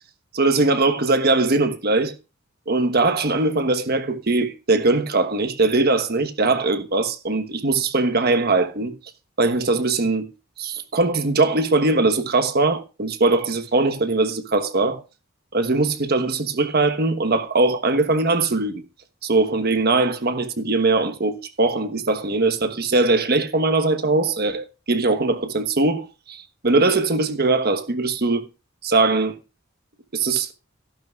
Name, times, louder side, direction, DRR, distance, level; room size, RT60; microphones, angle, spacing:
voice 1, 0.3-2.1 2.7-8.9 9.4-10.3 10.6-15.0 15.5-18.8 19.2-28.4 28.8-29.4 30.1-30.5, right 3 dB, 50° right, 1.2 m, -21 dB
14.0 x 11.5 x 2.4 m
head